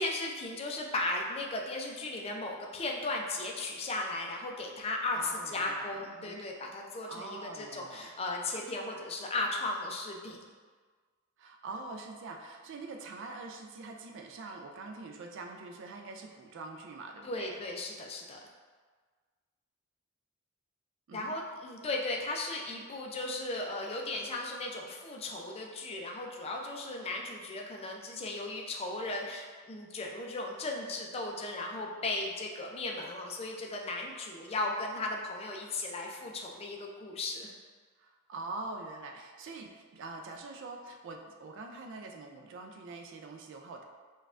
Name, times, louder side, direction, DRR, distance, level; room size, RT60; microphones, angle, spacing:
voice 1, 0.0-5.2 5.5-10.5 17.2-18.4 21.1-37.5, left 2 dB, 30° left, 0 dB, 0.4 m, -36 dB
voice 2, 5.1-6.4 7.1-8.1 11.4-17.6 21.1-21.4 38.0-43.8, right 3 dB, 60° right, 3 dB, 0.3 m, -44 dB
5.3 x 2.3 x 2.5 m, 1.5 s
head